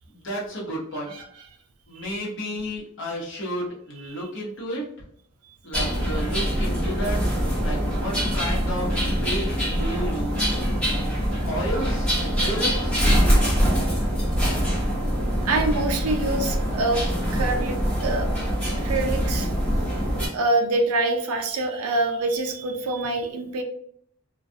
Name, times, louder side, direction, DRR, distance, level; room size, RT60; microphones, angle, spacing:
voice 1, 0.2-1.1 1.9-4.8 5.6-7.2 7.5-8.9 9.2-9.5 9.8-10.3 11.5-12.1 12.4-13.0, equal, 60° left, -4 dB, 0.9 m, -31 dB
voice 2, 1.0-1.5 2.0-2.2 4.0-4.3 15.4-17.0 17.3-18.3 18.8-19.5 20.3-23.6, right 2 dB, 85° right, 5 dB, 0.5 m, -26 dB
sound 1, 5.7-20.3, equal, 5° left, 0.9 m, -24 dB
2.3 x 2.2 x 2.6 m, 0.65 s
head